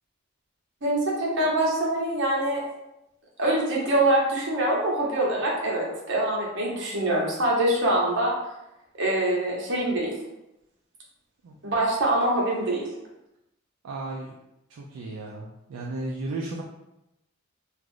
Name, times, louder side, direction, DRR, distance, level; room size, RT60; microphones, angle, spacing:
voice 1, 0.8-2.6 3.4-8.3 9.0-10.1 11.6-12.8, right 1 dB, 60° right, -3 dB, 0.9 m, -24 dB
voice 2, 13.8-14.4 14.7-16.6, right 2 dB, 80° right, -2 dB, 0.4 m, -34 dB
2.5 x 2.4 x 3.4 m, 0.90 s
head